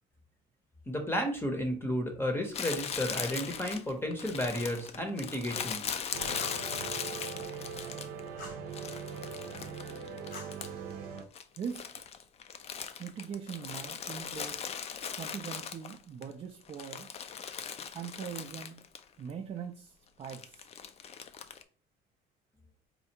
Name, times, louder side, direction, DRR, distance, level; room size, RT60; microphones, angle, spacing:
voice 1, 0.9-6.1, equal, 15° left, 0.7 m, -33 dB
Crumpling crinkling, 2.5-8.3 8.7-10.9 11.2-16.2 16.6-19.0 19.3-19.4 20.2-21.6, left 7 dB, 40° left, 0.4 m, -39 dB
sound 1, 6.1-11.2, right 6 dB, 85° right, 0.6 m, -41 dB
Fire, 6.3-6.7 8.4-8.7 10.3-11.2, left 2 dB, 70° left, 1.2 m, -48 dB
voice 2, 11.6-11.9 13.0-14.7 15.1-17.1 17.9-18.8 19.2-20.7, right 7 dB, 35° right, 0.4 m, -41 dB
4.3 x 2.3 x 2.8 m
cardioid pair, 110°, 17 cm